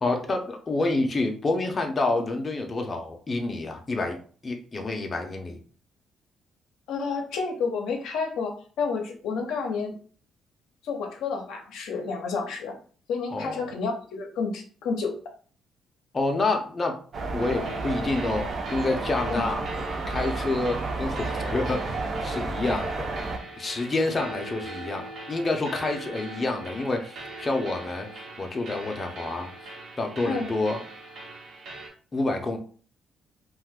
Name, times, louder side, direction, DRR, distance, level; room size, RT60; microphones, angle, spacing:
voice 1, 0.0-4.2 4.4-5.6 13.3-13.6 16.1-17.0 17.3-19.7 20.1-23.1 23.6-29.7 30.0-30.8 32.1-32.6, left 2 dB, 30° left, 3 dB, 0.6 m, -28 dB
voice 2, 6.9-10.0 10.8-12.8 13.1-15.1 19.3-19.4 30.2-30.5, left 4 dB, 85° left, 3 dB, 0.6 m, -30 dB
sound 1, 17.1-23.4, right 3 dB, 50° right, 0.6 m, -31 dB
sound 2, 17.4-31.9, right 2 dB, 70° right, 1.0 m, -41 dB
2.6 x 2.4 x 3.4 m, 0.43 s
cardioid pair, 90°, 0 cm